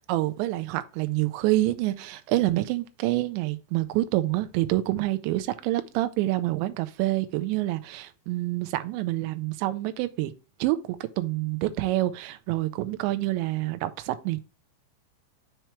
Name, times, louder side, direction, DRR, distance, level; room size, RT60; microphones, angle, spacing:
voice 1, 0.1-10.3 10.6-14.4, right 16 dB, 85° right, 2.8 m, -27 dB
6.8 x 4.5 x 3.1 m
omnidirectional pair, 5.3 m